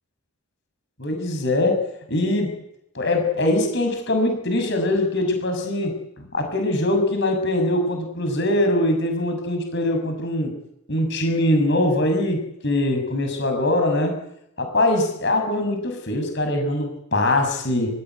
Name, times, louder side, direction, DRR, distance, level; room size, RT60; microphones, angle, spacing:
voice 1, 1.0-1.8 2.1-2.5 2.9-10.5 10.9-14.2 14.6-18.0, left 1 dB, 50° left, 5 dB, 6.8 m, -22 dB
28.0 x 16.0 x 9.5 m, 0.78 s
head